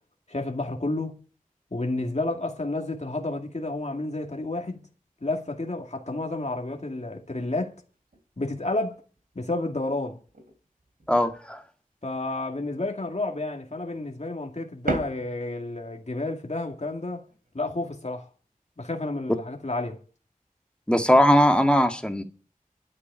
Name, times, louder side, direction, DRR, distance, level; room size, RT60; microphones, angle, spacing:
voice 1, 0.3-1.2 1.7-4.8 5.2-7.8 8.4-9.0 9.4-10.2 12.0-17.2 17.5-18.3 18.8-20.0, left 2 dB, 50° left, 2.1 m, -30 dB
sound 1, 6.0-6.5 7.0-7.2 7.6-9.9 10.3-11.6 12.0-12.9 13.3-14.1 14.4-15.9 16.5-17.5, right 2 dB, 85° right, 3.0 m, -39 dB
voice 2, 11.1-11.6 20.9-22.2, equal, 5° left, 1.9 m, -19 dB
11.0 x 8.4 x 9.0 m
wide cardioid pair, 50°, 15 cm